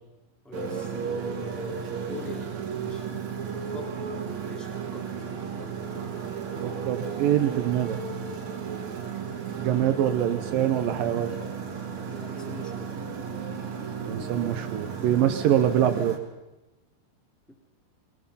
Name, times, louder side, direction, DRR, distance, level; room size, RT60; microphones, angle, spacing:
voice 1, 0.4-3.1 3.5-3.9 4.4-5.1 12.1-12.9, left 3 dB, ahead, 3 dB, 1.8 m, -43 dB
Motorcycle, 0.5-16.2, right 6 dB, 50° right, 2.9 m, -34 dB
voice 2, 6.6-8.0 9.6-11.4 14.1-16.2, right 11 dB, 75° right, 8 dB, 2.2 m, -24 dB
23.0 x 22.5 x 5.7 m, 1.0 s
omnidirectional pair, 5.0 m